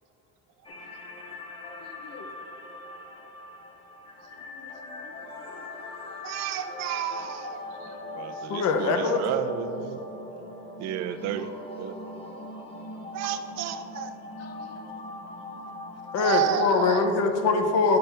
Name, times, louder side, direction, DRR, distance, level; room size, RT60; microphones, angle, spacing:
sound 1, 0.6-17.3, left 1 dB, 15° left, 0.8 m, -41 dB
voice 1, 0.6-0.9 1.3-1.4 4.2-4.7 5.0-5.3 7.7-8.4 9.8-10.0 10.3-10.6 12.0-12.7 14.4-14.7 15.1-15.2, right 6 dB, 70° right, 2 dB, 1.0 m, -61 dB
voice 2, 1.6-2.3 4.5-5.0 5.5-5.6 8.5-9.2 14.4-14.8 16.1-18.0, left 4 dB, 50° left, 5 dB, 0.7 m, -25 dB
voice 3, 6.2-7.6 8.1-10.0 10.8-11.5 11.8-11.9 13.1-14.1 16.2-17.0, right 10 dB, 55° right, 10 dB, 0.5 m, -31 dB
10.5 x 5.6 x 3.4 m, 3.0 s
cardioid pair, 155°, 33 cm